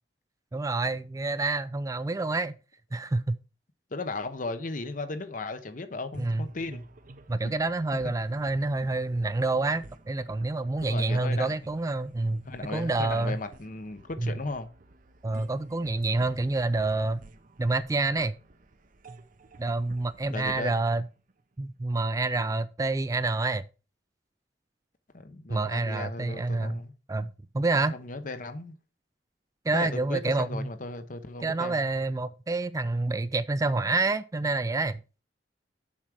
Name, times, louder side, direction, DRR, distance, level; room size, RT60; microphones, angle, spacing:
voice 1, 0.5-2.5 2.9-3.4 6.2-6.5 7.3-12.4 12.7-13.4 14.2-14.3 15.2-17.2 17.6-18.3 19.6-21.1 21.6-23.6 25.5-26.8 27.1-27.3 27.5-27.9 29.7-30.7 31.4-35.0, right 3 dB, 20° right, 0.3 m, -28 dB
voice 2, 3.9-6.8 7.4-7.5 10.8-11.5 12.4-14.7 20.2-20.8 25.1-26.9 27.9-28.7 29.7-31.9, left 2 dB, 50° left, 0.9 m, -36 dB
sound 1, 6.1-21.8, right 2 dB, 50° right, 0.7 m, -53 dB
7.3 x 6.0 x 4.9 m
head